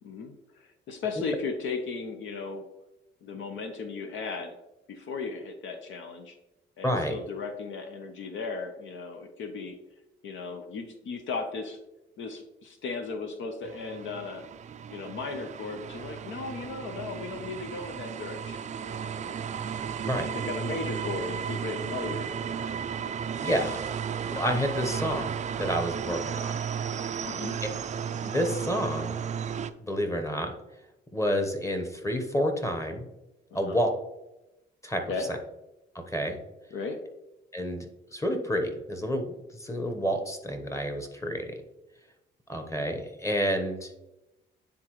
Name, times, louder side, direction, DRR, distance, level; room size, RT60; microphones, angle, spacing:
voice 1, 0.0-2.6 3.2-4.6 4.9-6.4 6.8-9.8 10.2-11.8 12.2-14.4 14.9-19.3 20.1-22.8 27.3-27.6 33.5-33.8 35.1-35.3 36.7-37.0, left 4 dB, 75° left, 6 dB, 0.8 m, -36 dB
voice 2, 6.8-7.1 20.0-20.3 23.4-23.8 24.3-26.5 28.2-29.2 29.8-30.5 31.1-33.0 33.5-33.9 34.8-35.0 35.3-35.4 35.9-36.4 37.5-37.9 38.1-39.3 39.6-41.5 42.5-43.9, equal, 15° left, 5 dB, 1.0 m, -29 dB
sound 1, 13.6-29.7, right 7 dB, 35° right, 0.4 m, -34 dB
9.5 x 3.7 x 3.1 m, 0.94 s
cardioid pair, 90°, 20 cm